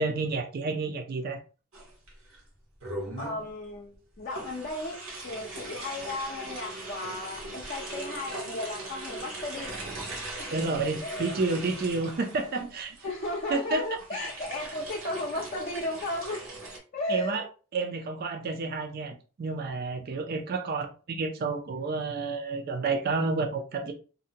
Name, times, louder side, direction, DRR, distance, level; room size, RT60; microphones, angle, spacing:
voice 1, 0.0-1.4 10.5-13.0 13.5-13.8 14.2-14.3 17.1-17.4 17.7-23.9, right 3 dB, 50° right, 0.4 m, -30 dB
sound 1, 1.7-2.4 2.8-3.5 4.3-16.8, right 2 dB, 75° right, 0.9 m, -40 dB
voice 2, 3.2-5.0 5.2-9.7 10.4-10.6 11.0-11.3 13.0-16.4 16.9-17.5 20.1-20.2, left 2 dB, 40° left, 0.5 m, -35 dB
2.6 x 2.1 x 2.7 m
head